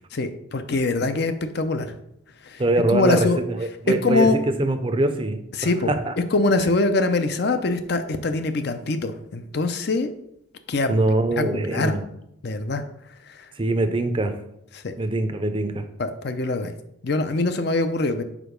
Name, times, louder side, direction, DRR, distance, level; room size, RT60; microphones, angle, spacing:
voice 1, 0.1-1.9 2.5-2.6 2.9-3.4 4.0-4.4 5.6-5.9 6.3-10.1 10.7-10.9 11.4-12.0 12.4-12.8 14.7-14.9 16.0-16.7 17.0-18.2, left 3 dB, 55° left, 9 dB, 0.5 m, -23 dB
voice 2, 2.6-5.4 5.9-6.1 10.9-12.0 13.6-14.4 15.0-15.8, right 2 dB, 25° right, 8 dB, 0.5 m, -23 dB
5.0 x 4.4 x 5.1 m, 0.79 s
head